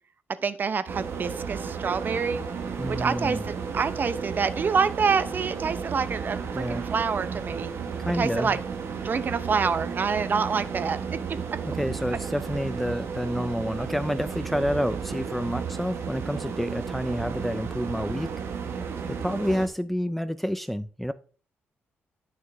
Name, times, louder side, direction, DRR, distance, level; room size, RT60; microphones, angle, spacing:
voice 1, 0.4-2.4 3.0-7.7 8.1-8.6 9.0-11.0, right 5 dB, 45° right, 13 dB, 0.6 m, -27 dB
sound 1, 0.9-19.7, right 6 dB, 65° right, 1.2 m, -33 dB
voice 2, 2.8-3.5 6.5-6.9 8.0-8.6 11.6-18.3 19.1-21.1, equal, 5° left, 12 dB, 0.4 m, -29 dB
9.2 x 6.2 x 3.3 m, 0.40 s
cardioid pair, 90°, 5 cm